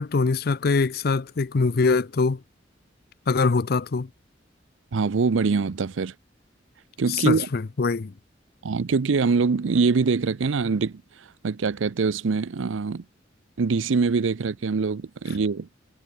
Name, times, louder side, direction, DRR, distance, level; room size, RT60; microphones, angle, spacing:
voice 1, 0.0-2.4 3.3-4.1 7.1-8.1, left 4 dB, 55° left, 0.6 m, -23 dB
voice 2, 4.9-6.1 7.0-7.5 8.6-11.0 11.4-13.0 13.6-15.7, right 4 dB, 90° right, 0.6 m, -23 dB
head